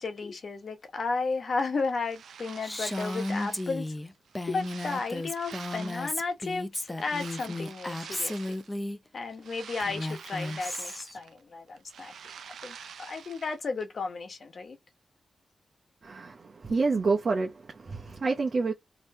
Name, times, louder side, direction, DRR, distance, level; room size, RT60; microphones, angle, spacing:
voice 1, 0.0-3.9 4.5-8.6 9.1-12.2 12.6-14.8, left 4 dB, 60° left, 1.1 m, -33 dB
sound 1, 1.8-3.8 4.3-6.3 6.9-8.8 9.2-11.4 11.7-13.6, right 7 dB, 85° right, 0.5 m, -46 dB
Female speech woman speaking, 2.6-9.0 9.8-11.2, left 1 dB, 15° left, 0.6 m, -34 dB
voice 2, 16.0-18.7, right 4 dB, 50° right, 0.9 m, -28 dB
3.2 x 3.0 x 4.2 m
cardioid pair, 65°, 0 cm